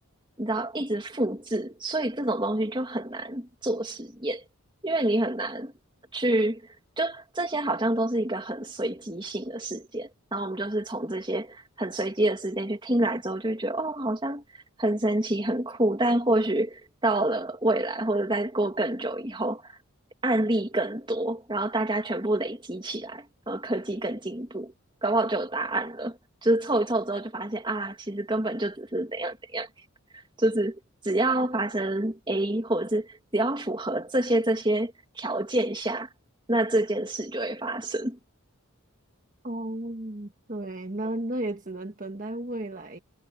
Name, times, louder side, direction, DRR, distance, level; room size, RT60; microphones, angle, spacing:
voice 1, 0.4-4.4 4.8-5.7 6.1-6.6 7.0-14.4 14.8-19.7 20.2-24.7 25.0-29.7 30.4-36.1 36.5-38.2, right 1 dB, 20° right, 2.6 m, -27 dB
voice 2, 39.4-43.0, right 1 dB, 35° right, 1.5 m, -33 dB
head